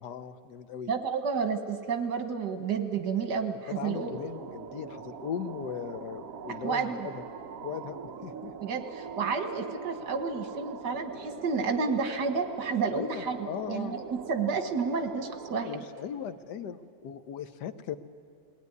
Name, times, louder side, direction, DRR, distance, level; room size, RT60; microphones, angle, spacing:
voice 1, 0.0-0.9 3.7-7.3 7.6-8.5 12.9-14.0 15.6-18.0, left 8 dB, 75° left, 10 dB, 1.4 m, -38 dB
voice 2, 0.9-4.1 6.6-7.1 8.6-13.4 13.7-14.0 14.3-15.7, right 5 dB, 75° right, 6 dB, 2.0 m, -30 dB
sound 1, 3.7-15.7, right 6 dB, 60° right, 1.2 m, -42 dB
21.0 x 16.5 x 9.6 m, 2.4 s
omnidirectional pair, 1.8 m